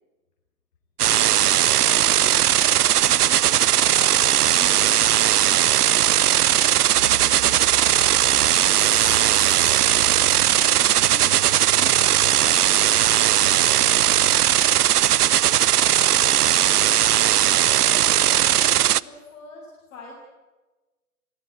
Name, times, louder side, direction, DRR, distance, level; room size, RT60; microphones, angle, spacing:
voice 1, 1.0-1.4 1.8-4.1 4.5-8.0 8.3-9.3 13.6-14.1 14.5-14.6 15.8-16.1 17.6-20.1, left 2 dB, 55° left, -3 dB, 7.2 m, -43 dB
sound 1, 1.0-19.0, right 12 dB, 85° right, 0.7 m, -18 dB
sound 2, 6.9-14.5, right 8 dB, 65° right, 1.4 m, -38 dB
sound 3, 8.7-10.9, left 18 dB, 35° left, 1.3 m, -44 dB
voice 2, 10.5-12.7, left 7 dB, 90° left, 12 dB, 1.9 m, -42 dB
25.0 x 17.0 x 9.3 m, 1.2 s
hypercardioid pair, 145°, 45 cm